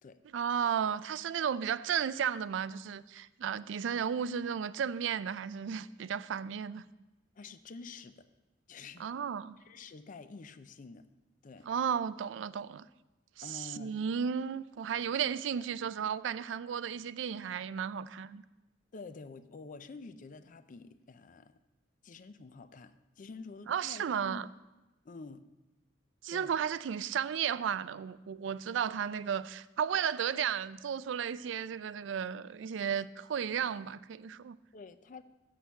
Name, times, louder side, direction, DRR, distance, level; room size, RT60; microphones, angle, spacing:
voice 1, 0.3-6.9 9.0-9.6 11.7-12.9 13.4-18.4 23.7-24.5 26.2-34.6, right 8 dB, 80° right, 0.4 m, -34 dB
voice 2, 7.4-8.3 8.7-9.1 9.6-11.1 11.4-11.7 13.4-14.0 18.9-21.6 22.0-24.5 25.0-25.5 26.3-26.5 33.6-33.7 34.7-35.2, left 4 dB, 45° left, 0.5 m, -48 dB
7.6 x 6.4 x 6.8 m
head